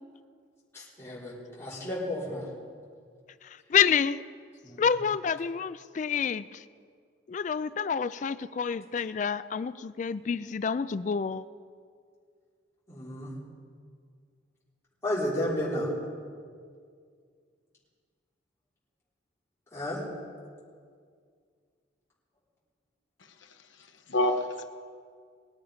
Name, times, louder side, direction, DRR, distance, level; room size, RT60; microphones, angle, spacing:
voice 1, 0.7-2.5 4.6-4.8 12.9-13.3 15.0-15.9 19.7-20.0, left 1 dB, 15° left, -10 dB, 3.9 m, -32 dB
voice 2, 3.4-4.2 4.8-6.6 7.3-11.4, left 7 dB, 40° left, 15 dB, 0.3 m, -28 dB
voice 3, 23.4-24.6, left 1 dB, 85° left, 6 dB, 1.0 m, -29 dB
21.5 x 8.8 x 5.1 m, 2.1 s
head